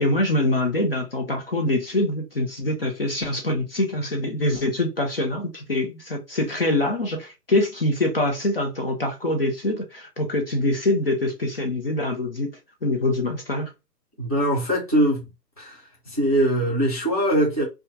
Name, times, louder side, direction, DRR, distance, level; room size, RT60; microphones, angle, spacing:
voice 1, 0.0-12.5 12.8-13.7, left 1 dB, 35° left, 0.6 m, -24 dB
voice 2, 14.2-15.3 15.6-17.7, right 1 dB, 25° right, 0.5 m, -22 dB
2.6 x 2.3 x 2.6 m
figure-of-eight pair, 150°, 49 cm